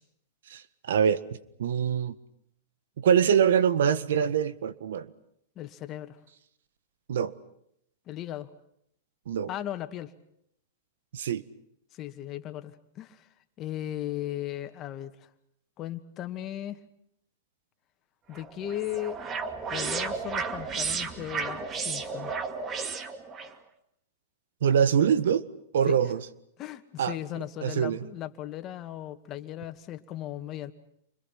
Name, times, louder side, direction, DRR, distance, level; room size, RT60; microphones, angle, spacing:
voice 1, 0.9-1.2 1.6-2.2 3.0-5.1 7.1-7.3 9.3-9.5 11.1-11.4 24.6-25.4 25.7-26.3 27.0-27.1 27.6-28.0, right 8 dB, 80° right, 15 dB, 1.7 m, -24 dB
voice 2, 5.6-6.2 8.1-8.5 9.5-10.1 11.9-13.3 13.6-15.3 15.8-16.8 18.3-19.2 19.7-22.3 25.9-26.0 26.6-30.7, left 12 dB, 35° left, 8 dB, 2.3 m, -37 dB
sound 1, 18.3-23.5, right 5 dB, 25° right, 2.5 m, -33 dB
29.5 x 25.5 x 6.0 m, 0.73 s
hypercardioid pair, 130°, 0 cm